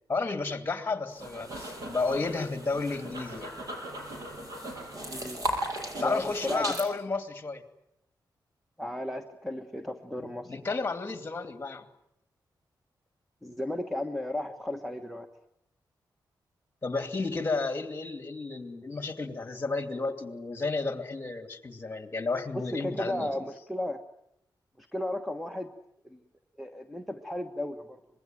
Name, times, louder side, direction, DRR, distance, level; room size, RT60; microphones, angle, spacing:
voice 1, 0.1-3.5 6.0-7.6 10.2-11.9 16.8-23.3, left 3 dB, 25° left, 8 dB, 2.5 m, -32 dB
sound 1, 1.1-6.9, right 1 dB, 50° right, 7.5 m, -37 dB
voice 2, 5.1-5.4 6.0-6.8 8.8-10.5 13.4-15.3 22.7-24.0 24.8-25.7 26.0-26.2 26.6-28.0, left 1 dB, ahead, 7 dB, 1.3 m, -34 dB
25.5 x 21.0 x 9.2 m, 0.79 s
wide cardioid pair, 140°, 8 cm